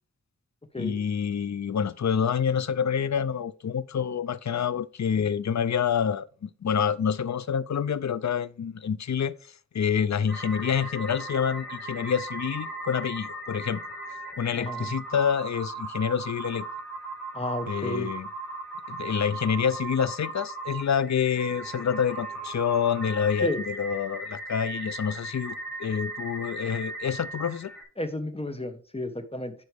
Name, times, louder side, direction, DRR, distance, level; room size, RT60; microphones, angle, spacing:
voice 1, 0.8-9.3 9.7-13.8 14.4-16.6 17.7-18.3 18.9-27.7, left 7 dB, 65° left, 0.5 m, -27 dB
sound 1, 10.3-27.8, right 2 dB, 5° left, 4.2 m, -38 dB
voice 2, 14.5-14.9 17.3-18.1 23.4-23.6 28.0-29.5, left 1 dB, 20° left, 1.3 m, -32 dB
9.5 x 5.2 x 3.4 m
wide cardioid pair, 50°, 30 cm